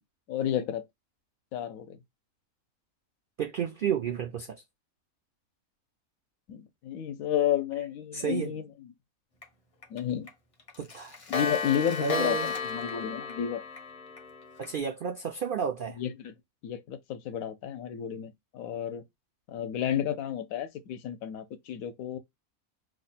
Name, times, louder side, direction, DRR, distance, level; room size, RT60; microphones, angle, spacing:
voice 1, 0.3-0.8 1.5-2.0 6.5-8.7 9.9-10.3 11.3-13.6 16.0-16.3 16.6-19.0 19.5-22.2, left 10 dB, 75° left, 1.0 m, -31 dB
voice 2, 3.4-4.6 8.1-8.6 10.8-11.2 12.0-12.5 14.6-16.0, right 8 dB, 80° right, 0.4 m, -32 dB
Clock, 9.4-9.5 9.8-10.0 10.3-10.4 10.7-14.7, left 5 dB, 50° left, 0.4 m, -34 dB
3.0 x 2.1 x 4.0 m
omnidirectional pair, 1.5 m